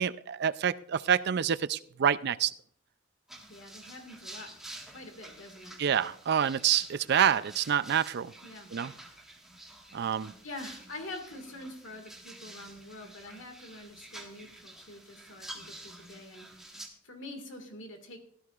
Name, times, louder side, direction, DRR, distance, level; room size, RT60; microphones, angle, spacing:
voice 1, 0.0-2.5 5.8-8.3 8.7-8.9 9.9-10.3, right 8 dB, 60° right, 0.4 m, -27 dB
sound 1, 3.3-16.9, right 1 dB, ahead, 1.6 m, -49 dB
voice 2, 3.5-4.5 4.9-5.7 8.4-8.7 10.2-18.2, left 2 dB, 70° left, 2.0 m, -46 dB
17.0 x 12.5 x 2.4 m
head